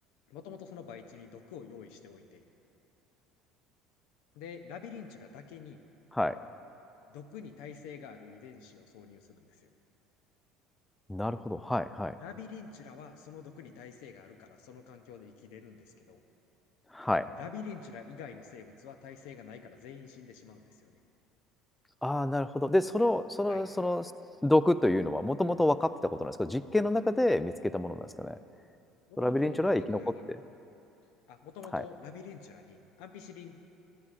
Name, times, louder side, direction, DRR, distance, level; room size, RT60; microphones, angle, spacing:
voice 1, 0.3-2.4 4.3-5.8 7.1-9.7 12.2-16.2 17.4-21.0 23.5-23.6 29.1-30.4 31.3-33.6, left 6 dB, 70° left, 7 dB, 0.5 m, -47 dB
voice 2, 11.1-12.1 16.9-17.3 22.0-24.1 24.4-28.4 29.2-30.0 31.7-31.8, left 1 dB, 10° left, 13 dB, 0.3 m, -28 dB
14.0 x 8.3 x 2.4 m, 2.8 s
hypercardioid pair, 75°, 0 cm